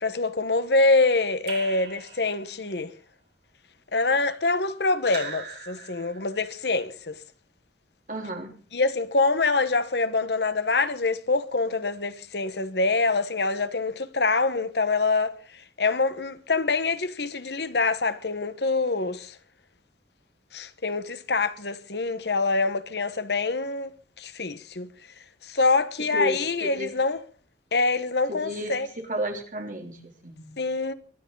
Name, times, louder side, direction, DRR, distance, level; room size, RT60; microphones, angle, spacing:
voice 1, 0.0-2.9 3.9-7.2 8.7-15.3 15.8-19.4 20.5-23.9 24.2-24.9 25.4-27.2 27.7-28.9 30.6-30.9, left 3 dB, 65° left, 1.3 m, -25 dB
Raindrop / Drip, 1.5-2.7 5.1-6.4, right 5 dB, 70° right, 4.5 m, -40 dB
voice 2, 8.1-8.6 26.1-26.9 28.3-28.7 29.1-30.6, equal, 45° right, 3.4 m, -32 dB
23.0 x 11.0 x 4.0 m
head